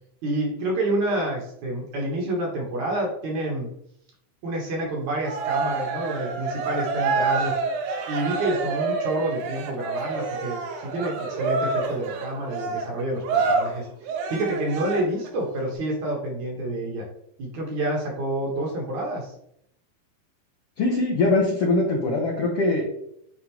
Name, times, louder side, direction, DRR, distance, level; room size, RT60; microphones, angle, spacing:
voice 1, 0.2-3.7 4.4-7.5 8.1-17.0 17.4-19.3, right 1 dB, 65° right, -1 dB, 2.2 m, -28 dB
Cheering, 5.2-15.3, right 4 dB, 80° right, 2.6 m, -27 dB
voice 2, 20.8-22.9, left 2 dB, 75° left, -1 dB, 1.3 m, -22 dB
8.9 x 3.8 x 3.0 m, 0.73 s
omnidirectional pair, 4.1 m